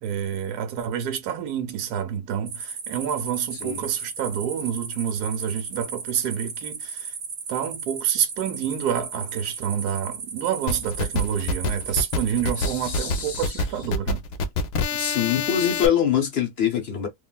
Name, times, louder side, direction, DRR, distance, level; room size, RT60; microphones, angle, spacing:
voice 1, 0.0-7.1 7.5-14.2, right 9 dB, 80° right, 1.2 m, -28 dB
sound 1, 2.5-12.6, right 5 dB, 55° right, 0.7 m, -36 dB
sound 2, 10.7-15.9, left 3 dB, 85° left, 1.2 m, -26 dB
voice 2, 12.6-13.5 14.9-17.1, left 9 dB, 60° left, 0.7 m, -24 dB
3.5 x 2.3 x 2.2 m
omnidirectional pair, 1.7 m